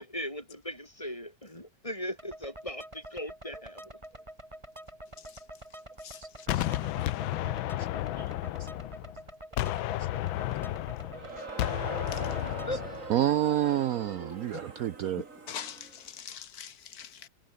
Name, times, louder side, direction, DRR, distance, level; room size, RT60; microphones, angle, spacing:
voice 1, 0.0-4.0 12.6-12.8, equal, 15° left, 6.2 m, -38 dB
sound 1, 2.2-12.9, right 1 dB, 15° right, 5.2 m, -47 dB
Gunshot gunfire, 6.5-9.2 9.6-13.1, left 15 dB, 85° left, 1.5 m, -32 dB
voice 2, 7.5-8.3 13.1-15.2, right 11 dB, 70° right, 0.8 m, -29 dB
Crowd, 11.0-16.1, right 3 dB, 40° right, 3.4 m, -42 dB
voice 3, 15.5-17.3, left 8 dB, 55° left, 1.5 m, -42 dB
omnidirectional pair, 2.1 m